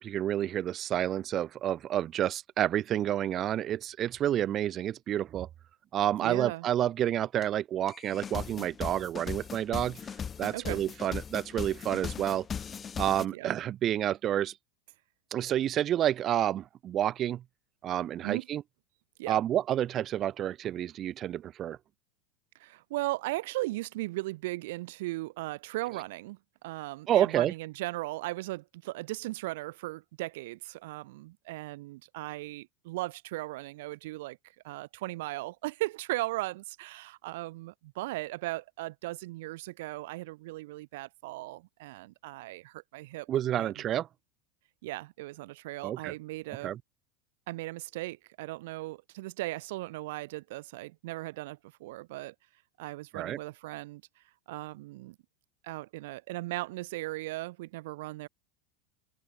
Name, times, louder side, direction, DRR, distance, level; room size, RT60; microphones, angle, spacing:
voice 1, 0.0-5.5 5.9-10.0 10.4-12.5 13.0-14.5 15.3-17.4 17.8-18.6 19.3-21.8 27.1-27.5 43.3-44.1 45.8-46.1 46.6-46.8 53.1-53.4, right 11 dB, 40° right, 2.8 m, -29 dB
voice 2, 6.2-6.7 10.5-10.8 13.3-13.5 18.2-18.5 19.2-19.4 22.6-34.4 34.6-43.3 43.6-43.7 44.8-46.8 47.5-52.3 52.8-54.0 54.5-55.2 55.6-58.3, right 19 dB, 70° right, 2.5 m, -37 dB
sound 1, 7.4-7.5 7.9-13.3, left 7 dB, 25° left, 2.0 m, -38 dB
hypercardioid pair, 105°, 0 cm